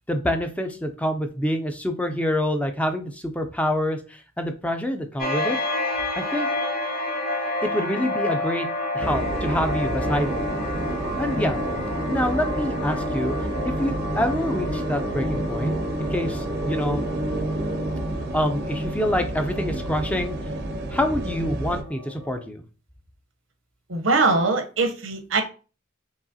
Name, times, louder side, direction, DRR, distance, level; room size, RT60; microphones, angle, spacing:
voice 1, 0.1-5.6 6.1-6.5 7.6-8.7 8.9-10.5 11.1-11.6 12.1-13.3 13.6-17.0 18.3-20.4 20.9-22.6, equal, 5° left, 6 dB, 0.4 m, -26 dB
sound 1, 5.2-22.4, left 2 dB, 45° left, 1.1 m, -31 dB
sound 2, 9.0-21.8, right 1 dB, 55° right, 0.5 m, -29 dB
voice 2, 23.9-25.4, right 3 dB, 90° right, 6 dB, 0.8 m, -22 dB
4.8 x 3.0 x 2.7 m, 0.36 s
head